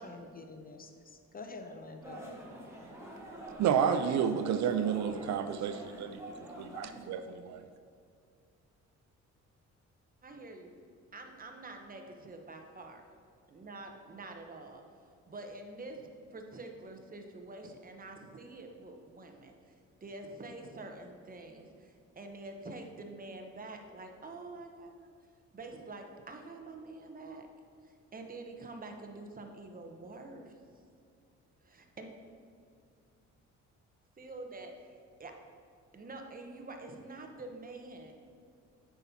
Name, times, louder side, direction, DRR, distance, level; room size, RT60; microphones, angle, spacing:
voice 1, 0.0-2.2, left 3 dB, 30° left, 5 dB, 0.6 m, -47 dB
sound 1, 2.0-7.0, right 1 dB, 10° right, 1.3 m, -47 dB
voice 2, 3.6-6.2 6.6-7.6, right 8 dB, 65° right, 9 dB, 0.4 m, -30 dB
voice 3, 10.2-10.7 11.1-13.0 13.5-14.8 15.3-16.0 16.3-19.7 20.0-25.1 25.5-27.5 27.8-30.5 31.6-32.1 34.2-34.7 35.2-35.3 35.9-38.1, right 2 dB, 30° right, 4 dB, 0.9 m, -46 dB
8.2 x 5.8 x 2.8 m, 2.3 s
cardioid pair, 90°, 30 cm